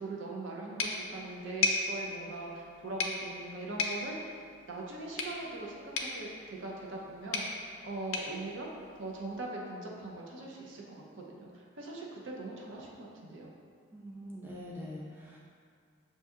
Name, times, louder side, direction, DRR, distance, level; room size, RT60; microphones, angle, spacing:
voice 1, 0.0-4.4 4.7-8.7 9.0-13.5, right 2 dB, 70° right, -2 dB, 0.6 m, -41 dB
sound 1, 0.8-9.5, left 4 dB, 85° left, 0.5 m, -37 dB
voice 2, 13.9-15.4, equal, 10° right, -5 dB, 0.3 m, -44 dB
6.3 x 2.7 x 2.4 m, 2.1 s
head